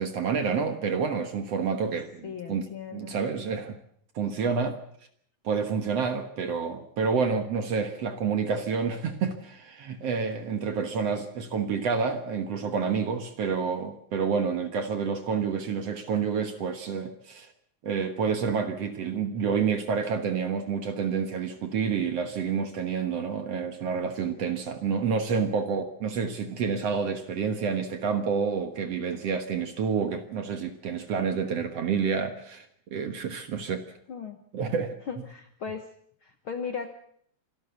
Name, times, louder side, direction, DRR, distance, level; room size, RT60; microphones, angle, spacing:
voice 1, 0.0-2.7 2.9-3.8 4.2-4.8 5.4-17.5 17.8-33.8 34.5-35.0, right 6 dB, 55° right, 8 dB, 2.1 m, -29 dB
voice 2, 2.2-3.2 34.1-34.4 35.1-35.8 36.2-36.9, left 6 dB, 55° left, 7 dB, 1.5 m, -37 dB
26.0 x 13.0 x 8.2 m, 0.65 s
omnidirectional pair, 4.0 m